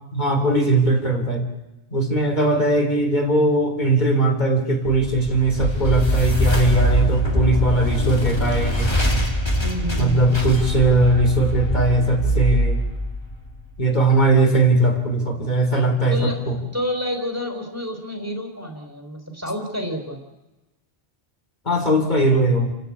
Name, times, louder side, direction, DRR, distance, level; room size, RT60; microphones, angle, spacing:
voice 1, 0.1-1.5 1.9-8.9 10.0-12.8 13.8-16.6 21.7-22.7, right 2 dB, 35° left, 5 dB, 3.8 m, -19 dB
sound 1, 4.9-14.0, equal, 20° left, 2.7 m, -23 dB
voice 2, 9.6-10.4 16.1-20.2, equal, 10° right, 4 dB, 3.7 m, -29 dB
29.5 x 13.0 x 8.6 m, 1.1 s
omnidirectional pair, 1.3 m